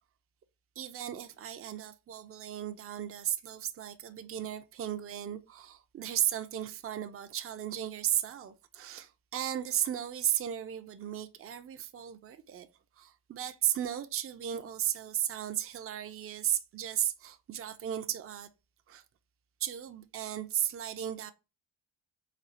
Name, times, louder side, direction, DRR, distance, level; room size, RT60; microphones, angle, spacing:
voice 1, 0.8-12.7 13.0-18.5 18.9-19.0 19.6-21.3, right 11 dB, 30° right, 0.4 m, -35 dB
4.3 x 2.3 x 2.5 m
wide cardioid pair, 115°, 49 cm